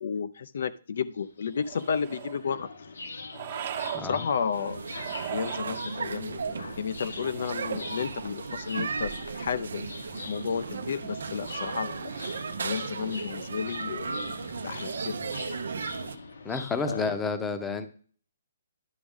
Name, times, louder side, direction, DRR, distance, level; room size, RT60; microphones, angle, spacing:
voice 1, 0.0-2.7 3.7-4.8 5.3-9.9 10.3-12.1 12.6-14.4 14.6-15.6 16.9-17.3, left 6 dB, 65° left, 13 dB, 0.5 m, -32 dB
sound 1, 1.1-17.2, left 4 dB, 85° left, 1.2 m, -44 dB
sound 2, 1.6-2.4 3.3-4.1 4.9-5.8 7.2-8.0, right 11 dB, 40° right, 1.1 m, -38 dB
sound 3, 4.5-16.2, right 5 dB, 80° right, 0.7 m, -36 dB
voice 2, 16.4-17.9, left 4 dB, 10° left, 9 dB, 0.7 m, -30 dB
10.5 x 6.1 x 3.5 m, 0.43 s
hypercardioid pair, 160°, 0 cm